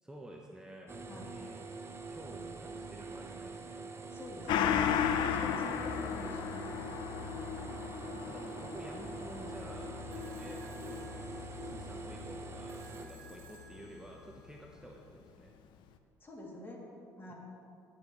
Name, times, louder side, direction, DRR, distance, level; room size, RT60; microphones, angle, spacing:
voice 1, 0.0-1.6 2.1-3.9 8.2-11.1 11.6-15.5 17.3-17.4, right 1 dB, 10° right, -1 dB, 1.0 m, -51 dB
sound 1, 0.9-13.1, right 4 dB, 30° right, 0.9 m, -45 dB
voice 2, 4.1-4.8 5.0-7.0 16.2-16.8 17.2-17.3, left 1 dB, 30° left, -2 dB, 2.8 m, -47 dB
Gong, 4.5-13.4 13.8-13.9, left 8 dB, 75° left, 0.6 m, -36 dB
sound 2, 10.1-15.1, right 4 dB, 90° right, 1.1 m, -59 dB
19.0 x 7.1 x 3.2 m, 2.4 s
supercardioid pair, 75°, 8 cm